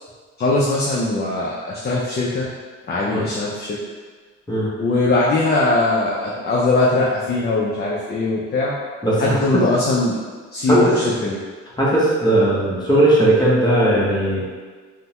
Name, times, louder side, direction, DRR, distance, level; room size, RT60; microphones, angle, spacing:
voice 1, 0.4-2.5 2.9-3.8 4.8-8.7 9.2-10.2 10.5-11.4, left 2 dB, 35° left, -5 dB, 0.5 m, -20 dB
voice 2, 9.0-9.6 10.7-10.9 11.8-14.4, right 1 dB, 15° left, -7 dB, 0.9 m, -17 dB
3.3 x 2.1 x 2.9 m, 1.5 s
cardioid pair, 90°, 30 cm